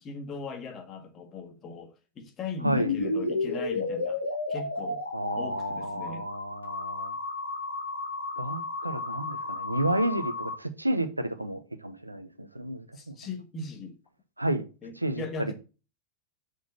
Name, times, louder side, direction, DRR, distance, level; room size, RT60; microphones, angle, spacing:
voice 1, 0.0-4.2 4.5-5.0 5.3-6.3 12.9-14.0 14.8-15.5, left 4 dB, 30° left, 1.5 m, -39 dB
sound 1, 2.6-10.5, left 3 dB, 80° left, 1.4 m, -32 dB
voice 2, 5.1-7.1 8.4-13.2 14.4-14.7 15.0-15.2, right 1 dB, 85° right, 0.8 m, -31 dB
6.3 x 4.7 x 5.3 m
figure-of-eight pair, 90°, 0 cm